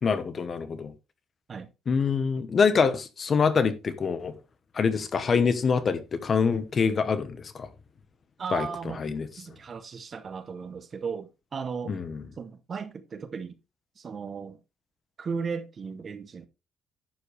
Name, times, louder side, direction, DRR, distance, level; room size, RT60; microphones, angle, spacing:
voice 1, 0.0-0.9 1.9-4.3 4.7-7.7 8.5-9.3 11.9-12.2, left 5 dB, 30° left, 1.1 m, -25 dB
voice 2, 8.4-12.0 12.4-13.6 14.0-14.6 15.2-16.5, right 5 dB, 30° right, 0.8 m, -36 dB
11.0 x 7.7 x 3.3 m
cardioid pair, 170°, 0 cm